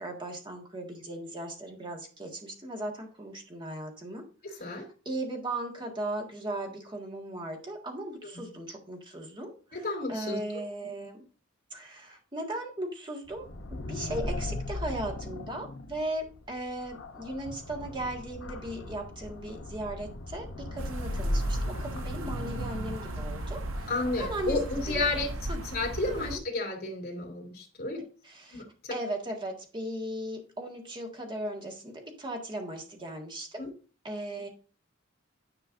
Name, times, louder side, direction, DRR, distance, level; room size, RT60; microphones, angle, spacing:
voice 1, 0.0-9.8 10.1-11.2 11.7-13.5 13.9-23.9 24.2-25.1 25.5-25.6 26.2-26.4 28.2-28.6 28.9-33.6 34.0-34.5, right 1 dB, 25° right, 1 dB, 1.7 m, -37 dB
voice 2, 9.7-10.4 23.9-25.3 25.6-28.0 28.5-28.9 33.6-33.7, left 2 dB, 50° left, -1 dB, 2.5 m, -32 dB
sound 1, 13.3-25.9, left 1 dB, 85° left, 0.9 m, -37 dB
sound 2, 20.8-26.4, right 1 dB, 90° right, 0.7 m, -38 dB
10.0 x 5.5 x 2.6 m, 0.37 s
head